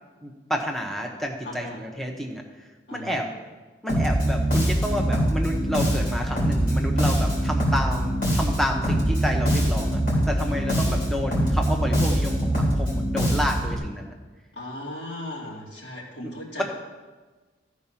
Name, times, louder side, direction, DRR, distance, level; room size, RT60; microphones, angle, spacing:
voice 1, 0.2-2.4 2.9-3.3 3.8-10.0 10.3-14.1, equal, ahead, 1 dB, 0.8 m, -29 dB
voice 2, 1.4-1.8 2.9-3.2 10.5-10.6 14.6-16.6, left 1 dB, 70° left, -4 dB, 2.5 m, -37 dB
Bass guitar, 3.9-13.8, equal, 45° left, 3.1 m, -23 dB
13.5 x 4.7 x 5.6 m, 1.3 s
head